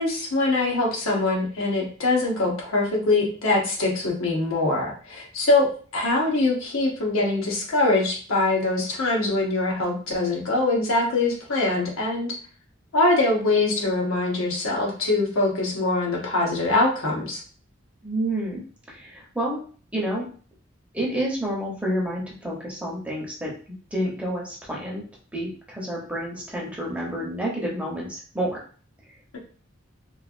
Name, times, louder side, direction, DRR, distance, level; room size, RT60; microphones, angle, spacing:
voice 1, 0.0-12.3 12.9-17.4, left 2 dB, 85° left, -2 dB, 0.9 m, -23 dB
voice 2, 18.0-18.6 18.9-19.6 19.9-20.3 20.9-23.5 23.9-25.0 25.3-28.6, right 1 dB, 5° right, -4 dB, 0.7 m, -29 dB
3.1 x 2.4 x 2.5 m, 0.42 s
head